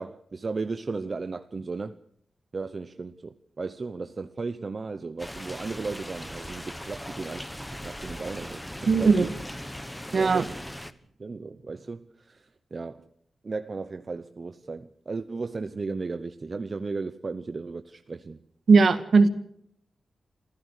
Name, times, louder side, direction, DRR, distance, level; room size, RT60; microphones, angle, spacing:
voice 1, 0.0-2.0 2.5-9.3 10.2-10.5 11.2-12.5 12.7-13.1 13.4-18.4, right 4 dB, 35° right, 0.8 m, -35 dB
sound 1, 5.2-10.9, left 1 dB, 5° left, 1.2 m, -39 dB
voice 2, 8.9-9.3 10.1-10.4 18.7-19.3, right 4 dB, 60° right, 2.0 m, -18 dB
27.5 x 15.5 x 6.6 m
wide cardioid pair, 130°, 0 cm